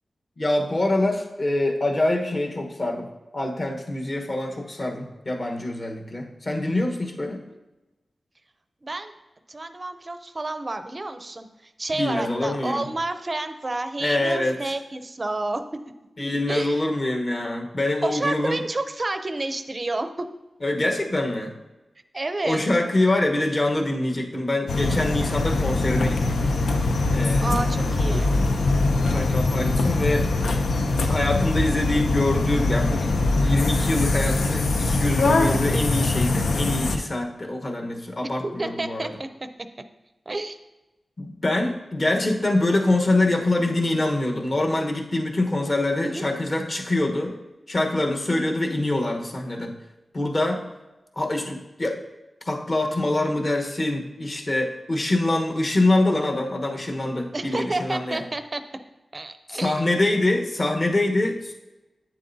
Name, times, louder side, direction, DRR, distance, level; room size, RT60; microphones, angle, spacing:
voice 1, 0.4-3.1 3.3-7.4 12.0-12.9 14.0-14.7 16.2-18.6 20.6-21.5 22.4-26.4 27.1-27.5 28.1-28.2 29.1-30.3 31.1-39.1 41.2-47.4 47.7-49.7 50.1-50.6 51.2-52.0 52.4-58.2 59.5-61.5, left 2 dB, 40° left, 2 dB, 1.2 m, -25 dB
voice 2, 8.8-9.1 9.5-11.5 11.8-15.6 16.5-16.9 18.0-20.3 22.1-22.7 27.4-28.3 38.4-39.3 40.3-40.6 46.0-46.3 48.3-48.5 57.3-58.6 59.1-59.8, right 2 dB, 30° right, 9 dB, 0.5 m, -30 dB
sound 1, 24.7-37.0, left 2 dB, 90° left, 0.6 m, -22 dB
8.9 x 7.4 x 2.7 m, 1.0 s
wide cardioid pair, 115°, 0 cm